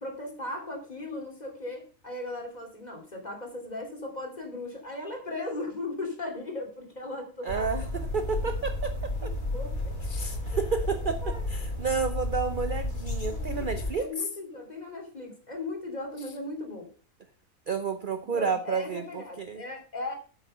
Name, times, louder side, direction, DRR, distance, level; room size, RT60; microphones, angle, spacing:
voice 1, 0.0-7.7 9.2-9.9 11.2-11.4 13.2-16.9 18.3-20.1, left 2 dB, 30° left, 2 dB, 3.0 m, -37 dB
voice 2, 7.4-8.9 9.2-9.3 10.1-14.0 17.7-19.6, right 5 dB, 45° right, 10 dB, 0.7 m, -31 dB
sound 1, 7.5-13.9, left 2 dB, 70° left, 4.1 m, -32 dB
9.2 x 8.2 x 5.5 m, 0.38 s
omnidirectional pair, 1.5 m